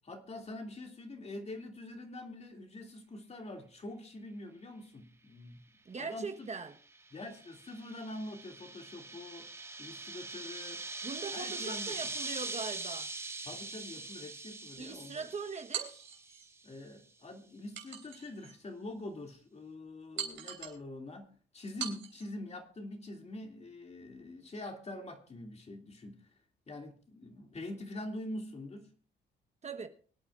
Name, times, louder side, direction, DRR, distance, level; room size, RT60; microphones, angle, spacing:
voice 1, 0.0-5.6 6.0-6.5 7.1-9.5 9.8-10.8 11.3-12.0 13.4-15.3 16.6-26.4 26.7-28.9, left 1 dB, 35° left, 2.6 m, -45 dB
voice 2, 5.8-6.7 11.0-13.1 14.8-16.1 29.6-29.9, right 5 dB, 35° right, 1.2 m, -41 dB
sound 1, 6.7-16.5, right 3 dB, 10° right, 1.1 m, -42 dB
bowl and spoon, 15.7-16.5 17.7-18.6 19.1-19.2 20.2-20.8 21.8-22.3, right 8 dB, 75° right, 3.4 m, -41 dB
24.5 x 8.8 x 2.5 m
cardioid pair, 90°, 20 cm